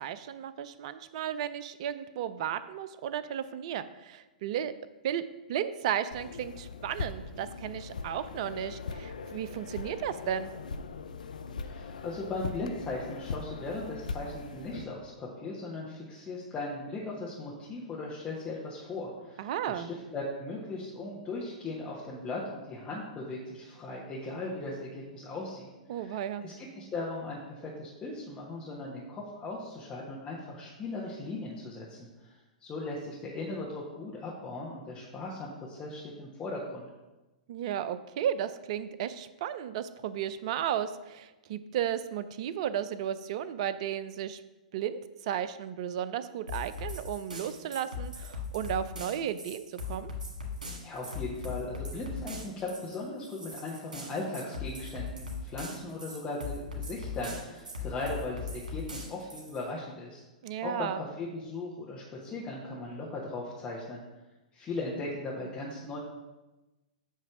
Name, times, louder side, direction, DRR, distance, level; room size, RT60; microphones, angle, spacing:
voice 1, 0.0-4.7 5.0-5.2 5.5-10.5 19.4-19.9 25.9-26.4 37.5-44.4 44.7-50.1 60.4-61.0, right 9 dB, 50° right, 14 dB, 0.5 m, -34 dB
sound 1, 6.1-14.8, left 4 dB, 75° left, 0.5 m, -40 dB
voice 2, 11.6-32.3 32.6-36.9 50.8-60.2 60.6-64.0 64.5-66.0, left 2 dB, 25° left, -5 dB, 1.3 m, -38 dB
sound 2, 46.5-59.6, left 4 dB, 80° right, 1.8 m, -39 dB
8.1 x 3.1 x 6.0 m, 1.1 s
hypercardioid pair, 110°, 4 cm